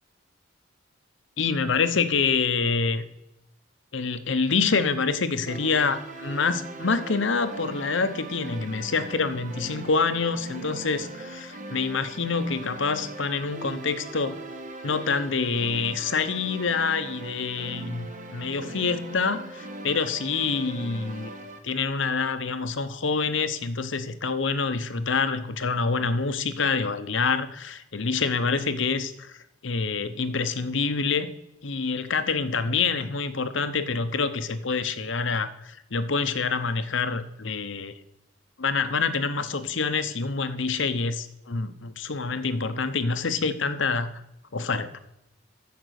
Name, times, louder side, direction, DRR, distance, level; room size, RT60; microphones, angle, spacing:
voice 1, 1.4-3.0 3.9-14.4 14.8-21.3 21.6-29.4 29.6-31.3 31.6-38.0 38.6-44.2 44.5-45.0, left 4 dB, 70° left, 11 dB, 0.8 m, -26 dB
sound 1, 5.5-21.6, right 2 dB, 40° right, 1.3 m, -40 dB
14.0 x 5.3 x 6.4 m, 0.87 s
head